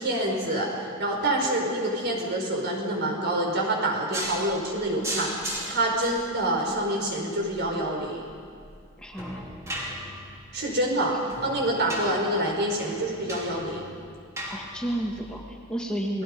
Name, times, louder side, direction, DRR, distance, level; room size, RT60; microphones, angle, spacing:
voice 1, 0.0-8.3 10.5-13.9, right 1 dB, 55° right, 0 dB, 5.1 m, -27 dB
sound 1, 4.1-15.4, equal, 15° right, 2.9 m, -38 dB
voice 2, 9.0-9.4 14.5-16.2, right 1 dB, 5° left, -2 dB, 1.9 m, -31 dB
30.0 x 20.0 x 5.4 m, 2.2 s
head